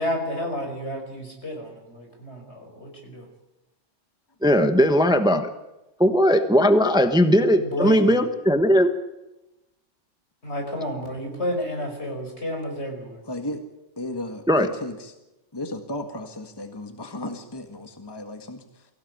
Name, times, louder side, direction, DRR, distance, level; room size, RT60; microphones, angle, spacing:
voice 1, 0.0-3.2 7.6-8.1 10.4-13.2, left 1 dB, 65° left, 2 dB, 5.8 m, -30 dB
voice 2, 4.4-5.5 6.0-8.9 14.5-14.7, equal, 5° right, 8 dB, 1.1 m, -18 dB
voice 3, 13.2-13.6 14.0-15.1 15.5-18.9, left 1 dB, 20° left, 5 dB, 1.8 m, -35 dB
24.0 x 16.0 x 9.4 m, 1.0 s
omnidirectional pair, 1.3 m